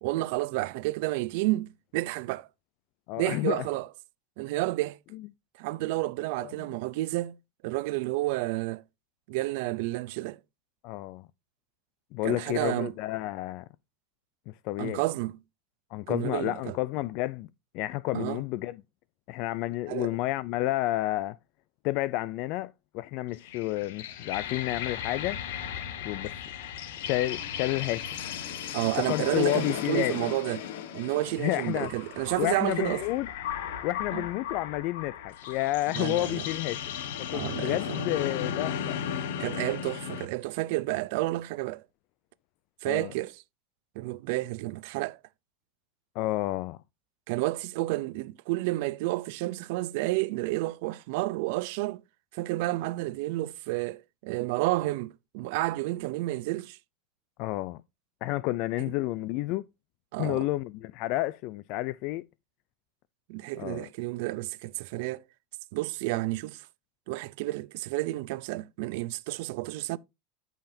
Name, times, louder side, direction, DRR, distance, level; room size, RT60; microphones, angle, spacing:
voice 1, 0.0-2.5 3.2-3.9 4.4-5.0 5.6-7.4 7.6-8.8 9.3-10.4 12.2-12.9 14.8-15.4 16.1-16.7 18.1-18.4 19.9-20.1 28.7-30.7 30.9-33.0 34.1-34.2 35.9-36.5 37.3-38.1 39.4-41.8 42.8-43.4 44.0-45.2 47.3-52.0 52.3-56.8 60.1-60.5 63.3-65.2 65.7-66.6 67.1-70.0, right 19 dB, 70° right, 0.5 m, -30 dB
voice 2, 3.1-3.6 6.4-6.5 10.8-11.3 12.1-13.6 14.5-15.0 15.9-17.5 17.7-18.8 19.3-21.4 21.8-25.4 26.0-26.4 27.0-28.2 29.1-30.1 31.4-31.9 32.4-33.3 33.8-36.8 37.2-39.0 42.8-43.1 46.2-46.8 57.4-57.8 58.2-59.6 60.2-62.2 63.6-63.8, left 17 dB, 55° left, 0.4 m, -30 dB
sound 1, 23.3-40.3, left 9 dB, 80° left, 1.2 m, -36 dB
13.0 x 5.7 x 2.7 m
supercardioid pair, 130°, 0 cm